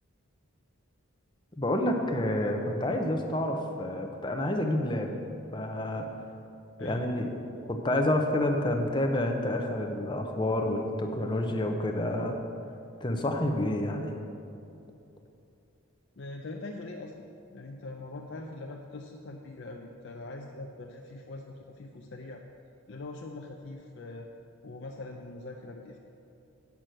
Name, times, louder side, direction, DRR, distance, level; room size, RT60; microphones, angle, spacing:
voice 1, 1.6-5.2 5.5-6.1 6.8-7.4 7.7-12.4 13.0-14.1, left 1 dB, 20° left, 3 dB, 0.7 m, -29 dB
voice 2, 16.2-17.2 17.5-22.4 22.9-24.3 24.6-26.0, left 2 dB, 55° left, 1 dB, 0.5 m, -42 dB
8.2 x 6.0 x 7.6 m, 2.7 s
head